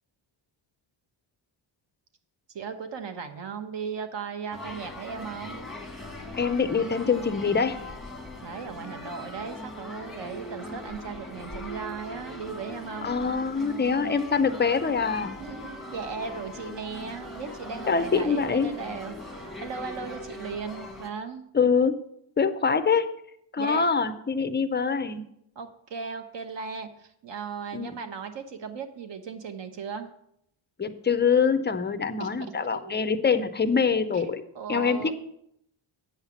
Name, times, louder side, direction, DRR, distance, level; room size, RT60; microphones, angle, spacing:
voice 1, 2.5-5.6 8.4-13.1 15.4-21.4 23.6-23.8 25.6-30.1 32.2-33.2 34.1-34.2 34.5-35.1, right 5 dB, 60° right, 8 dB, 1.1 m, -37 dB
sound 1, 4.5-21.1, left 1 dB, ahead, 1.0 m, -40 dB
voice 2, 6.3-7.8 13.0-15.4 17.9-18.7 21.5-22.0 22.4-23.1 23.5-25.2 27.7-28.0 30.8-34.4 34.7-35.1, left 5 dB, 25° left, 10 dB, 0.4 m, -24 dB
8.8 x 5.7 x 7.0 m, 0.74 s
wide cardioid pair, 175°, 49 cm